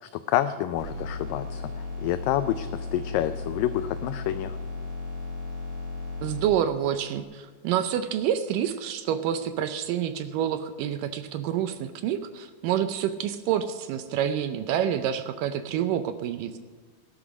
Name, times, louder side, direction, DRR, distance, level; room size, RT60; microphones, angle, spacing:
voice 1, 0.0-4.6, left 12 dB, 85° left, 11 dB, 2.0 m, -28 dB
sound 1, 0.8-6.5, left 3 dB, 35° right, 5.6 m, -35 dB
voice 2, 6.2-16.6, right 9 dB, 80° right, 10 dB, 2.0 m, -28 dB
17.5 x 10.5 x 6.0 m, 1.4 s
omnidirectional pair, 4.5 m